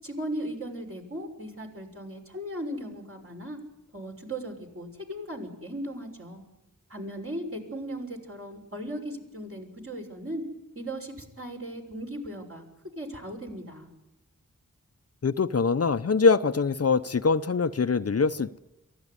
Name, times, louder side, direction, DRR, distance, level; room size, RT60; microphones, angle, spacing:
voice 1, 0.0-3.6 3.9-6.4 6.9-10.4 10.7-12.6 13.0-13.9, right 1 dB, 45° right, 6.5 m, -37 dB
voice 2, 15.2-18.6, left 4 dB, 50° left, 0.7 m, -23 dB
23.5 x 16.0 x 9.8 m
cardioid pair, 50°, 32 cm